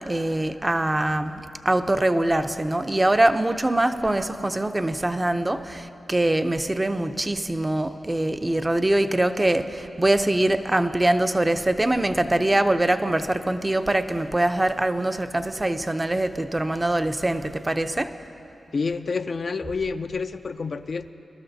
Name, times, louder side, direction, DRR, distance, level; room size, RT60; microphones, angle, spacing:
voice 1, 0.0-18.1, right 1 dB, 25° right, 9 dB, 0.6 m, -23 dB
voice 2, 18.7-21.1, left 4 dB, 65° left, 9 dB, 0.4 m, -28 dB
21.5 x 12.0 x 2.7 m, 3.0 s
cardioid pair, 45°, 0 cm